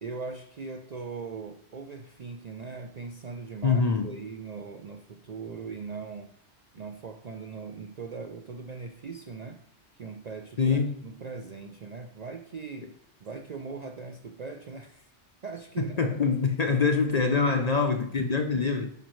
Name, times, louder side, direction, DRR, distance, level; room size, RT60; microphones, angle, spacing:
voice 1, 0.0-6.3 6.7-9.6 10.0-12.9 13.2-15.1 15.4-16.1 17.3-17.4, right 4 dB, 55° right, 5 dB, 0.5 m, -40 dB
voice 2, 3.6-4.1 10.6-11.0 16.0-18.9, left 4 dB, 50° left, 5 dB, 0.5 m, -24 dB
11.0 x 5.1 x 3.1 m, 0.70 s
omnidirectional pair, 1.2 m